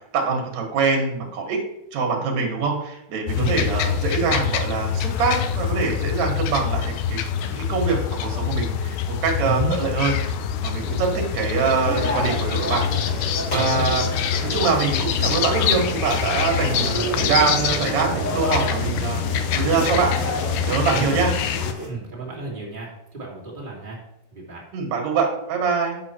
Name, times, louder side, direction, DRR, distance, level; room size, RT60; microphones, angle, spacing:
voice 1, 0.1-1.6 1.9-10.1 10.6-12.8 13.5-14.1 14.4-20.1 20.6-21.3 24.7-26.0, right 5 dB, 55° right, 2 dB, 2.6 m, -24 dB
sound 1, 3.3-21.7, left 8 dB, 80° left, 2.2 m, -25 dB
voice 2, 9.4-9.8 13.5-13.8 20.9-21.2 21.8-24.0 24.3-24.6, right 2 dB, 20° right, -4 dB, 1.6 m, -31 dB
sound 2, 10.8-22.7, right 9 dB, 85° right, 2.5 m, -38 dB
sound 3, 11.8-21.9, equal, 30° left, 1.4 m, -31 dB
9.8 x 6.2 x 4.5 m, 0.82 s
omnidirectional pair, 4.4 m